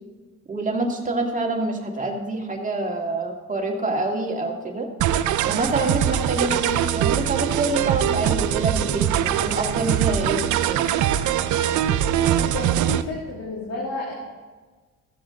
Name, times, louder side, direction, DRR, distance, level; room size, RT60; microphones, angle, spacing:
voice 1, 0.5-4.9 5.4-10.9, right 2 dB, 25° right, 1 dB, 2.1 m, -26 dB
sound 1, 5.0-13.0, right 11 dB, 80° right, 0.6 m, -22 dB
voice 2, 12.3-14.1, left 3 dB, 55° left, -3 dB, 2.4 m, -31 dB
14.5 x 7.3 x 3.8 m, 1.4 s
cardioid pair, 90°, 30 cm